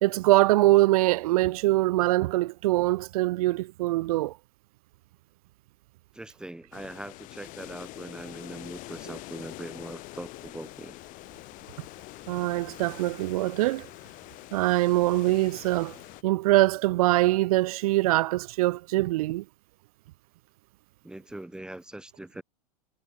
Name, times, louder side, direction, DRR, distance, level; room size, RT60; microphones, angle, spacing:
voice 1, 0.0-4.4 12.3-13.9 14.5-16.0 16.2-19.4, right 18 dB, 65° right, 1.5 m, -23 dB
voice 2, 6.1-11.0 21.0-22.4, right 1 dB, 5° right, 1.8 m, -41 dB
sound 1, 6.7-16.2, left 20 dB, 40° left, 2.3 m, -45 dB
supercardioid pair, 130°, 20 cm